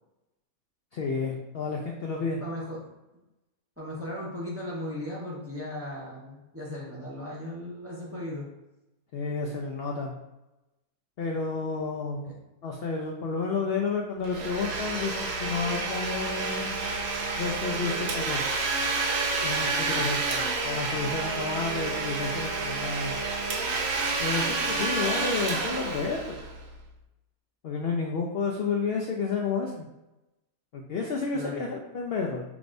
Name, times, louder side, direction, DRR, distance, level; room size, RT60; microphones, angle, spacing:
voice 1, 0.9-2.4 9.1-10.1 11.2-12.3 12.6-16.7 17.4-18.6 19.4-23.1 24.2-26.4 27.6-29.9 30.7-32.4, left 4 dB, 65° left, 0 dB, 0.6 m, -31 dB
voice 2, 2.4-2.8 3.8-8.5 12.2-12.4 31.3-31.7, left 1 dB, 10° right, -5 dB, 0.8 m, -37 dB
Domestic sounds home sounds, 14.2-26.8, right 3 dB, 65° right, 1.1 m, -29 dB
6.0 x 3.3 x 2.5 m, 0.98 s
omnidirectional pair, 1.6 m